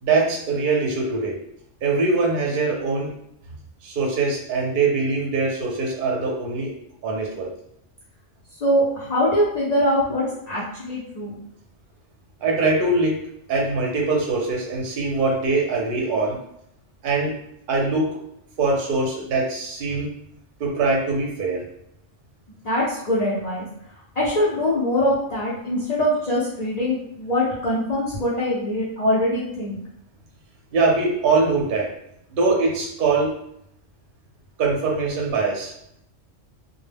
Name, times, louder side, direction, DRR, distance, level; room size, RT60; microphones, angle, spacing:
voice 1, 0.0-1.4 1.8-3.1 3.8-6.7 7.0-7.5 12.4-13.2 13.5-16.4 17.0-17.4 17.7-18.2 18.6-20.2 20.6-21.7 30.7-31.9 32.3-33.4 34.6-35.7, right 3 dB, 55° right, -1 dB, 0.6 m, -22 dB
voice 2, 8.6-11.4 22.6-23.7 24.2-29.8, left 1 dB, 50° left, -7 dB, 0.5 m, -23 dB
2.1 x 2.1 x 3.3 m, 0.74 s
omnidirectional pair, 1.3 m